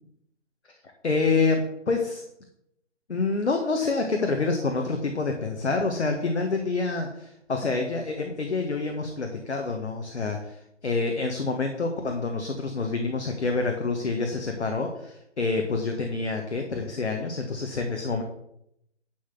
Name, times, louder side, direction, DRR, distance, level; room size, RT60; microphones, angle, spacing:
voice 1, 1.0-2.2 3.1-18.2, left 3 dB, 65° left, 4 dB, 1.8 m, -27 dB
11.0 x 4.1 x 7.7 m, 0.78 s
figure-of-eight pair, 140°, 36 cm